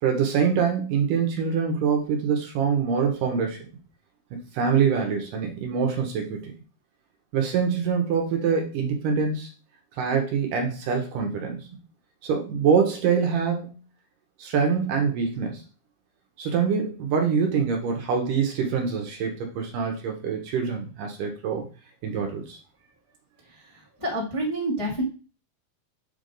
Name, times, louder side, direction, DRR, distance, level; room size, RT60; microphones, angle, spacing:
voice 1, 0.0-3.6 4.3-6.5 7.3-9.5 10.0-11.7 12.2-13.8 14.4-15.6 16.4-21.6 22.0-22.6, right 6 dB, 70° right, 2 dB, 2.2 m, -25 dB
voice 2, 23.4-25.0, right 1 dB, 25° left, -6 dB, 0.6 m, -29 dB
7.4 x 3.4 x 3.8 m, 0.34 s
omnidirectional pair, 4.5 m